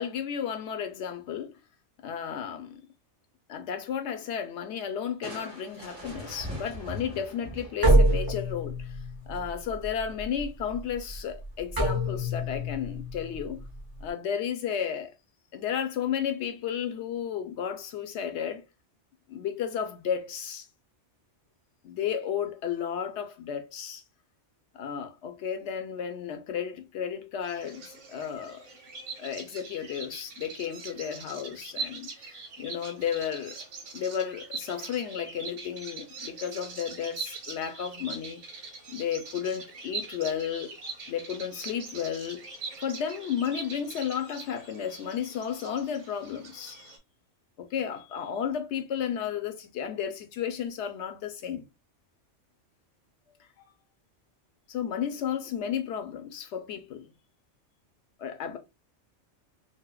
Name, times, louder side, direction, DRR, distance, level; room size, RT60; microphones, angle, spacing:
voice 1, 0.0-1.6 2.0-2.9 3.5-9.0 9.3-13.6 14.0-15.1 15.5-18.6 19.3-20.7 21.8-24.0 24.7-28.6 29.2-33.6 33.9-40.8 41.1-42.5 42.8-46.9 47.6-51.6 54.7-57.1 58.2-58.6, left 8 dB, 70° left, 0.9 m, -33 dB
Crushing, 5.2-8.6, equal, 50° right, 2.0 m, -41 dB
sound 1, 7.8-14.1, right 1 dB, 25° right, 0.6 m, -27 dB
Bird vocalization bird call bird song, 27.4-47.0, right 4 dB, 80° right, 1.3 m, -42 dB
4.2 x 2.1 x 2.2 m
omnidirectional pair, 1.2 m